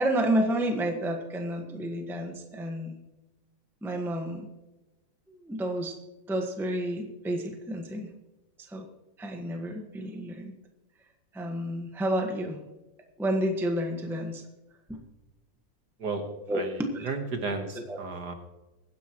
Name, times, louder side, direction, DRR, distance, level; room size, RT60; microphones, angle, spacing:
voice 1, 0.0-3.0 3.8-4.5 5.4-5.9 6.3-8.1 8.6-8.8 9.2-10.5 11.3-12.6 13.2-14.4 14.9-15.0 16.5-17.1 17.7-18.0, right 1 dB, ahead, 3 dB, 1.1 m, -30 dB
voice 2, 16.5-18.3, right 4 dB, 55° right, 5 dB, 1.7 m, -33 dB
23.0 x 10.0 x 3.1 m, 1.1 s
omnidirectional pair, 2.3 m